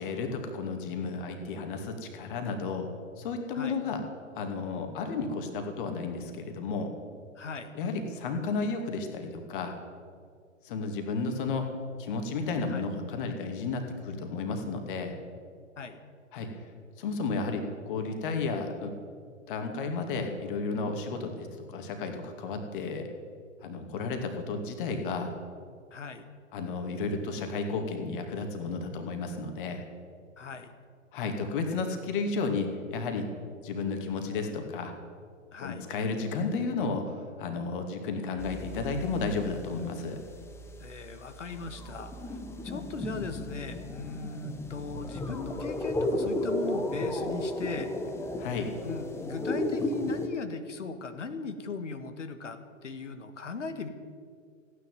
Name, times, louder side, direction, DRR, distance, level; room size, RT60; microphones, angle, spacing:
voice 1, 0.0-2.9 3.2-4.0 4.4-6.9 7.7-9.8 10.6-11.7 12.0-15.2 16.3-16.6 17.0-18.9 19.5-23.1 23.6-25.3 26.5-29.8 31.1-33.3 33.6-34.9 35.6-40.2 48.4-48.7, left 4 dB, 40° left, 5 dB, 2.4 m, -33 dB
voice 2, 7.3-7.7 12.7-12.9 15.8-16.0 25.9-26.2 30.4-30.7 35.5-35.9 40.8-42.4 42.6-47.9 48.8-53.9, left 4 dB, 70° left, 8 dB, 1.6 m, -38 dB
sound 1, 38.4-39.9 40.2-50.3, left 1 dB, 5° left, 0.9 m, -34 dB
15.5 x 10.0 x 9.3 m, 2.1 s
figure-of-eight pair, 115°, 38 cm